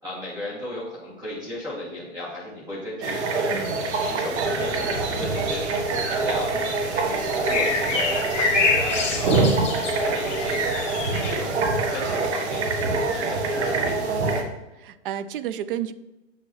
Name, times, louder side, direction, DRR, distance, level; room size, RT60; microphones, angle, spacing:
voice 1, 0.0-9.4 9.8-11.6 11.9-14.2, left 1 dB, 10° right, -7 dB, 2.7 m, -35 dB
sound 1, 3.0-14.4, right 3 dB, 60° right, 1.4 m, -25 dB
voice 2, 3.5-3.8 9.4-9.7 14.8-15.9, right 10 dB, 45° right, 14 dB, 0.5 m, -31 dB
sound 2, 4.6-11.3, left 4 dB, 15° left, 1.3 m, -28 dB
7.7 x 6.1 x 3.2 m, 1.0 s
hypercardioid pair, 145°, 38 cm